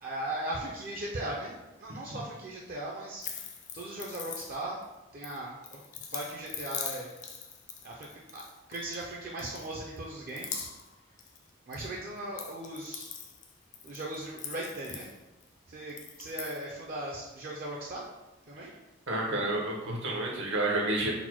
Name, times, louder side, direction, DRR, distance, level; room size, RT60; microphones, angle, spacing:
voice 1, 0.0-3.2 3.7-4.8 5.1-5.8 6.1-7.1 7.8-8.4 8.7-10.7 11.7-13.1 13.8-15.1 15.7-18.1 18.5-18.7, right 1 dB, 45° right, -2 dB, 0.4 m, -38 dB
sound 1, 3.2-4.8 5.2-9.1 9.4-10.0 10.3-11.9 12.2-15.5 15.9-16.6, left 7 dB, 40° left, 0.4 m, -42 dB
voice 2, 19.1-21.1, right 2 dB, 70° right, -1 dB, 0.8 m, -30 dB
4.0 x 2.1 x 4.3 m, 1.1 s
head